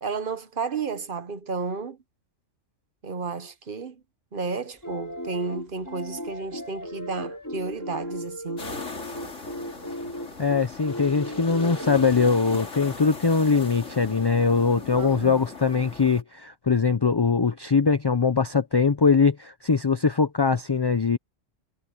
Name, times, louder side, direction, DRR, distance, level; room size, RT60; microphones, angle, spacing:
voice 1, 0.0-2.0 3.0-4.0 4.3-8.7 15.0-15.4, right 4 dB, 45° right, 1.2 m, -32 dB
sound 1, 4.8-12.5, equal, 15° left, 5.8 m, -36 dB
sound 2, 8.6-16.2, left 3 dB, 75° left, 3.1 m, -39 dB
voice 2, 10.4-21.2, left 5 dB, 30° left, 0.4 m, -22 dB
omnidirectional pair, 1.3 m